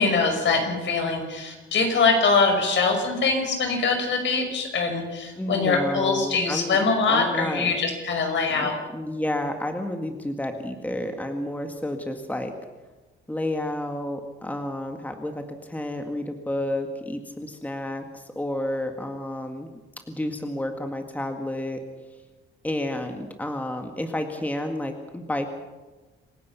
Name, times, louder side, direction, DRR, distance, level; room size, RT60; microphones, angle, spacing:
voice 1, 0.0-8.7, left 4 dB, 60° left, 4 dB, 5.8 m, -23 dB
voice 2, 5.4-6.8 7.1-7.8 8.5-12.5 13.3-19.7 20.1-21.8 22.6-25.5, left 1 dB, 5° left, 5 dB, 1.9 m, -30 dB
27.0 x 16.5 x 5.8 m, 1.2 s
cardioid pair, 110°, 21 cm